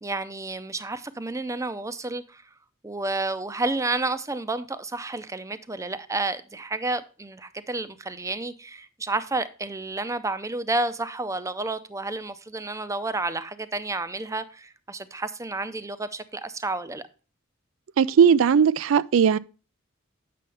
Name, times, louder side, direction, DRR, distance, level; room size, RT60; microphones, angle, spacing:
voice 1, 0.0-2.4 2.8-17.1, right 2 dB, 15° right, 0.5 m, -30 dB
voice 2, 18.0-19.4, right 7 dB, 75° right, 0.4 m, -18 dB
8.5 x 6.6 x 3.3 m
head